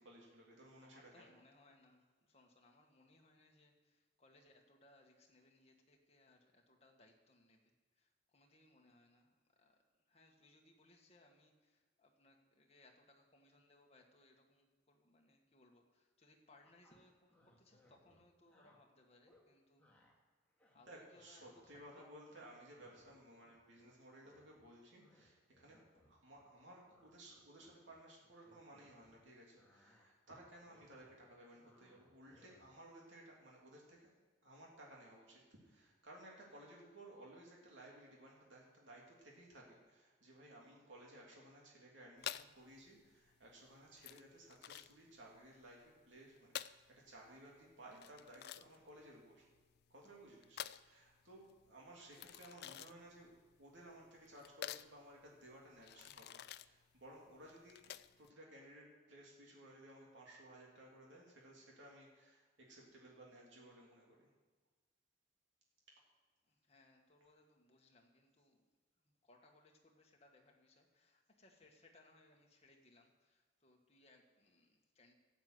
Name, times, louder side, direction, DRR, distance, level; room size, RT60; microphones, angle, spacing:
voice 1, 0.0-1.3 20.7-25.8 26.1-34.1 34.4-49.5 49.9-53.3 53.6-64.3, right 1 dB, 70° right, -2 dB, 2.8 m, -58 dB
voice 2, 0.7-20.1 20.7-22.1 66.5-68.6 69.0-75.1, left 2 dB, 35° left, 1 dB, 1.7 m, -68 dB
sound 1, 16.6-18.8 19.2-19.5 19.8-20.1 20.5-22.0 22.3-24.0 24.2-29.2 29.5-32.9, left 1 dB, 10° left, 2.0 m, -71 dB
sound 2, 42.2-58.3, left 11 dB, 55° left, 0.3 m, -51 dB
13.0 x 8.1 x 7.9 m, 1.4 s
head